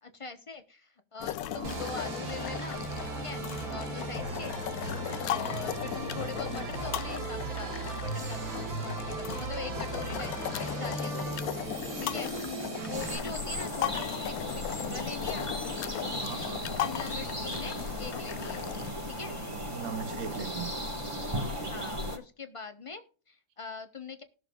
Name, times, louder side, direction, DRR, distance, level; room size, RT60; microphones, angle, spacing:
voice 1, 0.0-2.9 3.2-4.6 5.3-10.3 10.6-11.4 12.0-12.3 12.7-15.5 16.8-18.7 19.1-19.4 21.6-24.2, left 5 dB, 30° left, 0.6 m, -42 dB
sound 1, 1.2-18.9, left 12 dB, 75° left, 0.8 m, -37 dB
voice 2, 1.4-1.8 3.7-4.0 5.4-5.6 16.2-16.7 19.5-20.7 21.4-21.7, right 7 dB, 65° right, 0.8 m, -41 dB
sound 2, 1.6-13.2, right 4 dB, 85° right, 2.6 m, -37 dB
sound 3, 12.9-22.2, equal, 15° right, 1.6 m, -36 dB
20.0 x 6.8 x 2.3 m
omnidirectional pair, 2.1 m